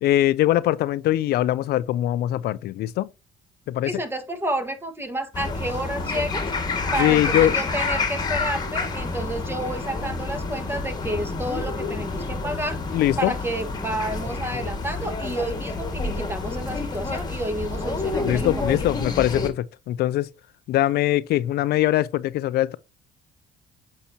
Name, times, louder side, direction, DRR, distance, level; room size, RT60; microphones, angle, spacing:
voice 1, 0.0-3.1 3.7-3.9 7.0-7.6 12.9-13.3 18.2-20.3 20.7-22.8, left 14 dB, 70° left, 0.5 m, -22 dB
voice 2, 3.8-6.5 6.9-12.8 13.2-18.9, right 1 dB, 15° right, 1.6 m, -30 dB
sound 1, 5.3-19.5, left 3 dB, 25° left, 1.8 m, -28 dB
8.4 x 5.7 x 2.8 m
cardioid pair, 110°, 17 cm